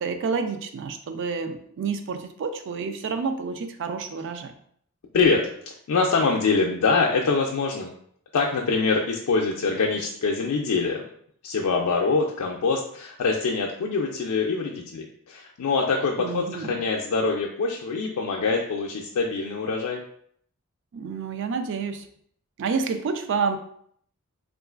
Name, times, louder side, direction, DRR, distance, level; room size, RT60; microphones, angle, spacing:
voice 1, 0.0-4.5 16.2-16.8 20.9-22.0 22.6-23.6, right 5 dB, 60° right, 8 dB, 0.4 m, -29 dB
voice 2, 5.1-7.9 8.3-11.0 11.4-20.0, left 4 dB, 80° left, -1 dB, 0.4 m, -24 dB
3.7 x 2.4 x 2.3 m, 0.65 s
head